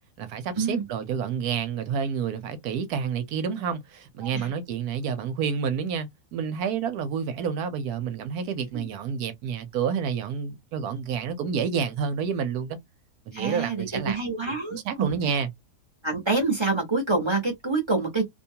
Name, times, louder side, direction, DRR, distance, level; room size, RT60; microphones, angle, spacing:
voice 1, 0.2-12.8 13.3-14.2 14.5-15.5, right 7 dB, 75° right, 1.0 m, -29 dB
voice 2, 13.3-15.4 16.0-18.2, right 3 dB, 25° right, 0.6 m, -27 dB
2.7 x 2.2 x 2.7 m
omnidirectional pair, 1.8 m